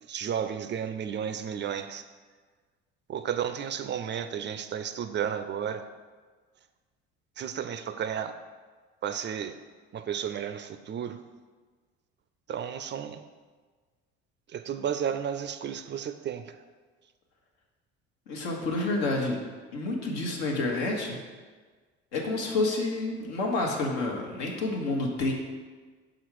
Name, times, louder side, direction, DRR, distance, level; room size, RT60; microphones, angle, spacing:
voice 1, 0.0-2.0 3.1-5.9 7.4-8.4 9.0-9.6 9.9-11.2 12.5-13.2 14.5-16.6, right 8 dB, 35° right, 10 dB, 0.4 m, -33 dB
voice 2, 18.3-19.4 19.7-21.2 22.1-25.3, left 2 dB, 75° left, 0 dB, 1.3 m, -29 dB
6.1 x 3.9 x 4.7 m, 1.4 s
hypercardioid pair, 65°, 34 cm